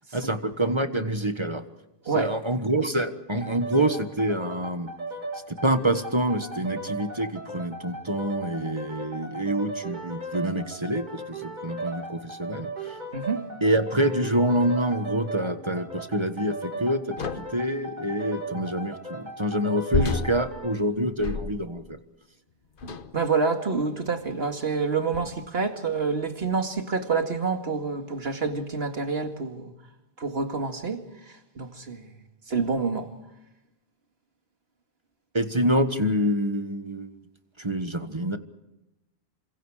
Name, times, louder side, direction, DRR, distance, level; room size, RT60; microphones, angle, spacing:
voice 1, 0.1-1.6 2.1-4.9 5.5-13.0 13.6-22.0 35.3-37.1 37.6-38.4, right 1 dB, 25° right, 1.4 m, -26 dB
sound 1, 3.4-20.8, right 2 dB, 45° right, 2.4 m, -37 dB
sound 2, 17.2-17.7 19.9-21.9 22.8-23.3 24.1-24.3 25.1-25.5, left 4 dB, 55° left, 1.2 m, -31 dB
voice 2, 23.1-29.7 30.2-32.1 32.5-33.1, right 4 dB, 70° right, 2.4 m, -27 dB
29.0 x 26.0 x 5.0 m
omnidirectional pair, 1.1 m